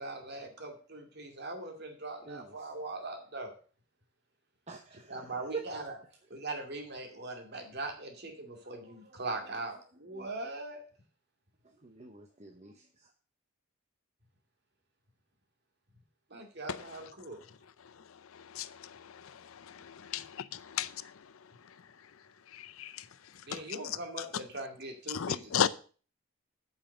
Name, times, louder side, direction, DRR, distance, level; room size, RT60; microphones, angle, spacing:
voice 1, 0.0-3.5 5.1-5.9 6.3-10.8 16.3-17.4 23.5-25.4, right 2 dB, 50° right, 2.3 m, -41 dB
voice 2, 2.2-2.7 4.7-5.6 8.6-9.6 10.1-10.3 11.6-13.1, right 4 dB, 30° right, 0.9 m, -46 dB
voice 3, 16.7-17.0 18.1-21.3 22.5-23.1 23.5-24.0 25.1-25.7, left 8 dB, 75° left, 0.5 m, -36 dB
8.9 x 5.7 x 6.7 m
head